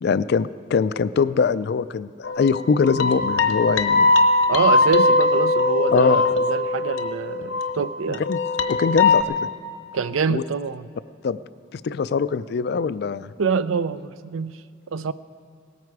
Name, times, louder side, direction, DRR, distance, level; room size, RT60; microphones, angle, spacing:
voice 1, 0.0-4.1 5.9-6.2 8.3-8.4 8.7-9.5 10.3-10.4 11.2-11.4 11.7-13.3, left 5 dB, 55° left, 16 dB, 0.3 m, -22 dB
sound 1, 2.2-7.9 8.1-9.2, left 3 dB, 75° left, 0.9 m, -20 dB
voice 2, 4.5-8.2 9.9-10.9 13.4-15.1, right 5 dB, 80° right, 14 dB, 0.5 m, -25 dB
18.0 x 14.0 x 4.7 m, 2.3 s
head